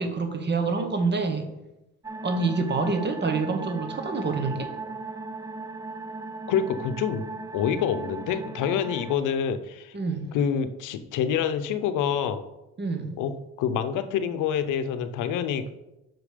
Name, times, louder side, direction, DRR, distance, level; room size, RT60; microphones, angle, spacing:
voice 1, 0.0-1.5 2.2-4.7 9.9-10.3 12.8-13.2, right 4 dB, 35° right, 6 dB, 1.1 m, -27 dB
sound 1, 2.0-9.2, right 3 dB, 10° right, 0.4 m, -37 dB
voice 2, 6.5-7.3 7.5-9.9 10.3-12.4 13.2-13.3 13.6-15.6, left 8 dB, 85° left, 10 dB, 0.6 m, -26 dB
6.1 x 5.0 x 5.0 m, 0.96 s
cardioid pair, 90°, 30 cm